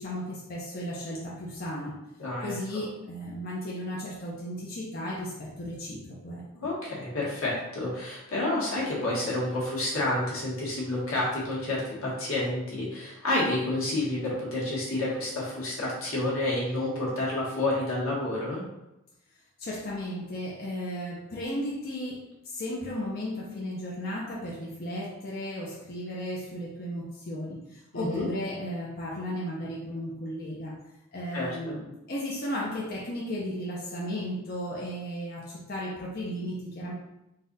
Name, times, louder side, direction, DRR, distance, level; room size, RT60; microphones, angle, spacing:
voice 1, 0.0-2.0 2.4-6.7 19.6-30.8 31.1-36.9, equal, 45° left, -4 dB, 0.6 m, -35 dB
voice 2, 2.2-2.5 6.5-18.6 27.9-28.3 31.3-31.8, left 2 dB, 85° left, -5 dB, 1.5 m, -29 dB
4.1 x 2.4 x 3.9 m, 0.90 s
head